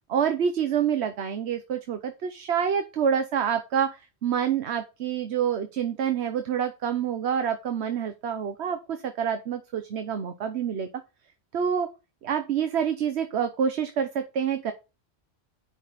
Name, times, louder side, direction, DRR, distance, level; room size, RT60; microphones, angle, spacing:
voice 1, 0.1-10.9 11.5-11.9 12.2-14.7, right 8 dB, 80° right, 7 dB, 1.1 m, -27 dB
8.5 x 5.8 x 4.1 m, 0.30 s
omnidirectional pair, 1.1 m